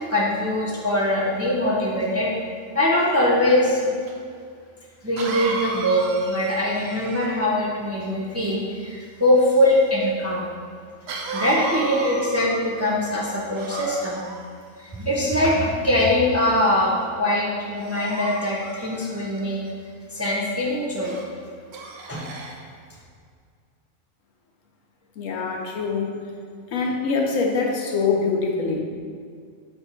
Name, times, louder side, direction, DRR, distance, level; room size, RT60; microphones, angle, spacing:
voice 1, 0.1-2.3 2.7-3.9 5.0-10.5 11.3-14.2 14.8-19.6 20.1-21.2 22.1-22.3, left 1 dB, 15° right, -5 dB, 0.6 m, -22 dB
Cough, 4.1-4.2 5.2-7.5 11.1-12.8 13.5-14.4 15.2-15.9 16.5-16.8 17.8-19.4 21.0-21.3 21.7-22.6, right 3 dB, 60° right, 0.8 m, -34 dB
voice 2, 25.2-26.1 26.7-28.8, left 4 dB, 80° left, 1 dB, 1.2 m, -24 dB
6.6 x 3.3 x 4.4 m, 2.2 s
omnidirectional pair, 1.3 m